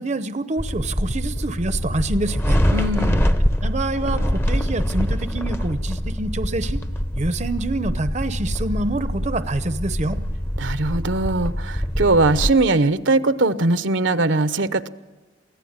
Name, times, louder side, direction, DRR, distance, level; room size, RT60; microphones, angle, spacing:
voice 1, 0.0-2.6 3.6-6.8 7.1-10.2, right 2 dB, 35° right, 11 dB, 0.8 m, -26 dB
sound 1, 0.6-12.5, equal, 10° left, 0.8 m, -24 dB
voice 2, 2.7-3.4 10.6-14.9, right 2 dB, 70° right, 13 dB, 0.9 m, -20 dB
24.0 x 16.0 x 8.8 m, 1.3 s
head